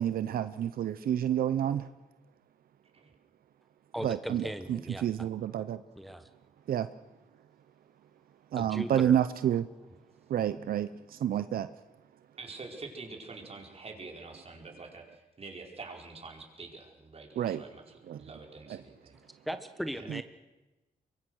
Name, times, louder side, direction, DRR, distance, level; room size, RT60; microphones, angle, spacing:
voice 1, 0.0-1.9 4.0-5.8 6.7-6.9 8.5-9.7 10.3-11.7 17.4-17.6 18.1-18.2 18.7-18.8 20.1-20.2, right 10 dB, 80° right, 13 dB, 0.7 m, -29 dB
voice 2, 3.9-5.0 6.0-6.3 8.5-9.2 19.4-20.2, equal, ahead, 9 dB, 1.2 m, -38 dB
voice 3, 12.4-19.2, right 3 dB, 45° right, 2 dB, 5.0 m, -46 dB
24.5 x 22.5 x 6.4 m, 1.1 s
cardioid pair, 85°, 15 cm